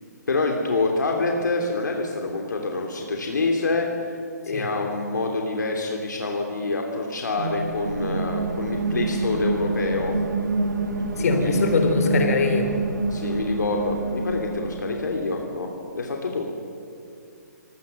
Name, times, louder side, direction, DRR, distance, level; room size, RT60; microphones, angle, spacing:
voice 1, 0.3-3.9 4.5-10.1 11.2-11.6 13.1-15.7 15.9-16.5, left 3 dB, 80° left, 1 dB, 2.9 m, -26 dB
sound 1, 7.4-15.2, right 3 dB, 80° right, 2.2 m, -27 dB
voice 2, 11.2-12.7, left 4 dB, 60° left, 5 dB, 3.9 m, -22 dB
24.5 x 17.5 x 6.7 m, 2.4 s
hypercardioid pair, 150°, 10 cm